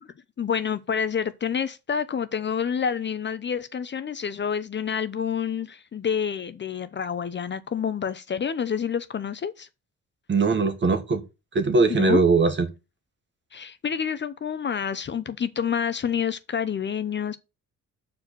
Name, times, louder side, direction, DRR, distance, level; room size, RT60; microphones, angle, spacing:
voice 1, 0.4-9.7 11.9-12.2 13.5-17.4, left 7 dB, 40° left, 0.7 m, -28 dB
voice 2, 10.3-11.2 11.5-12.7, right 4 dB, 40° right, 1.8 m, -20 dB
6.5 x 4.7 x 6.8 m
cardioid pair, 90°, 30 cm